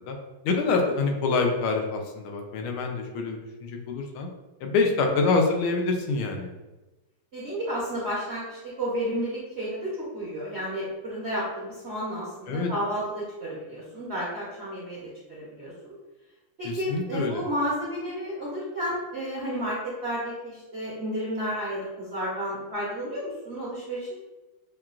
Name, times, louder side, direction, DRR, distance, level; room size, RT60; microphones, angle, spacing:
voice 1, 0.4-4.3 4.6-6.5 12.5-12.7 16.6-17.4, left 3 dB, 80° left, 3 dB, 1.5 m, -26 dB
voice 2, 7.3-15.9 16.6-24.2, equal, 55° right, -8 dB, 0.7 m, -32 dB
5.8 x 2.3 x 2.4 m, 1.1 s
omnidirectional pair, 2.3 m